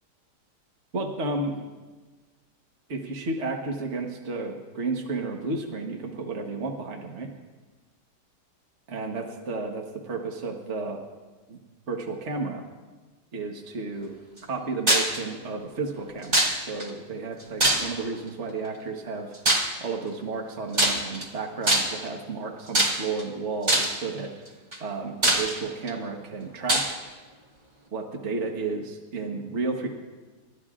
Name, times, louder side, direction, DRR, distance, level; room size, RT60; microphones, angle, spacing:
voice 1, 0.9-1.6 2.9-7.3 8.9-11.0 11.5-11.6 11.9-12.6 13.3-14.2 14.5-19.3 19.8-24.3 24.8-26.9 27.9-29.9, right 3 dB, 45° right, 1 dB, 1.5 m, -32 dB
sound 1, 14.9-15.2 16.3-16.8 17.6-18.1 19.4-19.8 20.7-21.2 21.7-22.1 22.7-23.2 23.7-24.0 24.7-24.8 25.2-25.9 26.7-26.9, right 1 dB, 25° right, 1.9 m, -22 dB
29.5 x 13.0 x 2.5 m, 1.3 s
omnidirectional pair, 1.8 m